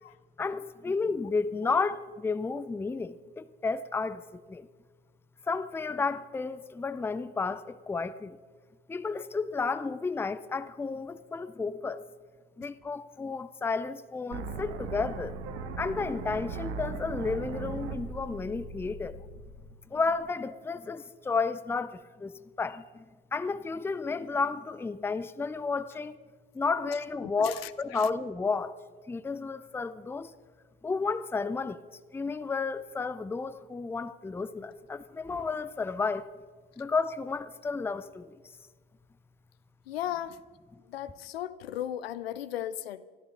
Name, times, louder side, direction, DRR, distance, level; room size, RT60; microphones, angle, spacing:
voice 1, 0.4-4.7 5.5-8.4 8.9-12.0 12.6-15.4 15.8-19.2 19.9-23.0 23.3-26.2 26.5-28.8 29.1-30.3 30.8-31.8 32.1-36.3 36.8-38.4, left 4 dB, 5° left, 0.6 m, -32 dB
sound 1, 14.3-20.3, right 4 dB, 50° right, 1.5 m, -39 dB
voice 2, 27.2-28.1 39.9-40.4 40.9-43.1, left 11 dB, 70° left, 0.7 m, -36 dB
22.5 x 14.0 x 3.9 m
figure-of-eight pair, 65°, 31 cm